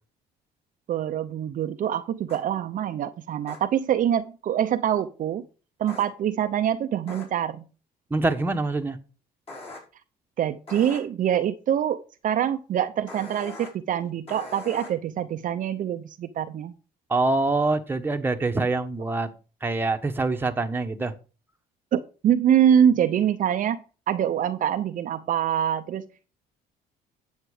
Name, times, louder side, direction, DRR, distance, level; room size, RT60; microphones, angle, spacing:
voice 1, 0.9-5.4 5.8-7.6 10.4-16.7 21.9-23.8 24.1-26.3, right 9 dB, 50° right, 0.7 m, -25 dB
sound 1, 2.3-2.4 3.5-3.6 5.9-6.0 7.1-7.2 9.5-9.8 10.7-11.0 13.1-13.7 14.3-14.9, left 2 dB, 35° left, 5.1 m, -40 dB
voice 2, 8.1-9.0 17.1-19.3 19.6-21.1, right 3 dB, 10° right, 1.2 m, -25 dB
9.1 x 7.4 x 4.9 m
cardioid pair, 110°, 17 cm